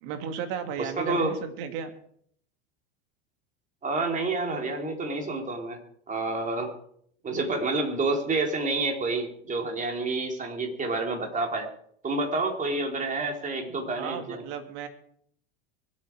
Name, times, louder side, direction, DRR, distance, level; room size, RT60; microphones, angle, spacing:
voice 1, 0.0-1.9 13.9-14.9, right 7 dB, 65° right, 6 dB, 2.7 m, -34 dB
voice 2, 0.8-1.3 3.8-5.8 6.1-6.7 7.2-11.7 12.0-14.4, right 3 dB, 25° right, 2 dB, 4.0 m, -29 dB
24.5 x 8.5 x 4.9 m, 0.66 s
hypercardioid pair, 100°, 31 cm